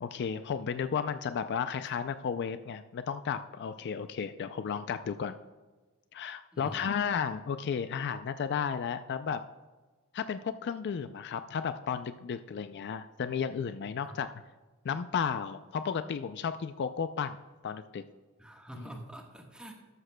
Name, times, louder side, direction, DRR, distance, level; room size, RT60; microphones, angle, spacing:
voice 1, 0.0-5.4 6.1-9.4 10.1-14.3 14.8-17.4 17.6-18.0 18.8-18.9, left 7 dB, 50° left, 10 dB, 0.4 m, -33 dB
voice 2, 6.5-7.0 14.0-14.2 18.4-19.7, right 1 dB, 5° right, 1 dB, 1.3 m, -46 dB
13.0 x 12.5 x 2.2 m, 1.3 s
head